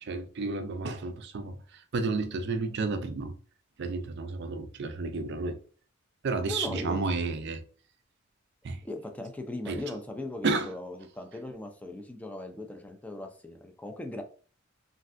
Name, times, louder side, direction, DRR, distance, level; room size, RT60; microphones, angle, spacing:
voice 1, 0.0-3.3 3.8-5.6 6.2-7.6 8.6-8.8 9.7-9.8 10.4-10.7, right 3 dB, 55° right, 0.4 m, -31 dB
voice 2, 6.5-7.0 8.8-14.2, left 2 dB, 5° left, 0.3 m, -38 dB
3.2 x 2.5 x 2.5 m
head